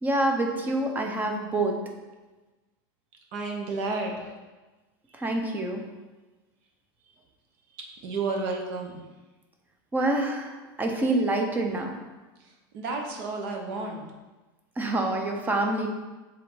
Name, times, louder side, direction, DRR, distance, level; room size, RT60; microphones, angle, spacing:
voice 1, 0.0-1.8 5.1-5.8 9.9-11.9 14.8-15.9, right 2 dB, 15° right, 2 dB, 0.8 m, -26 dB
voice 2, 3.3-4.3 8.0-9.0 12.7-14.0, right 3 dB, 55° right, 2 dB, 1.2 m, -31 dB
7.5 x 3.5 x 3.9 m, 1.2 s
supercardioid pair, 140°, 12 cm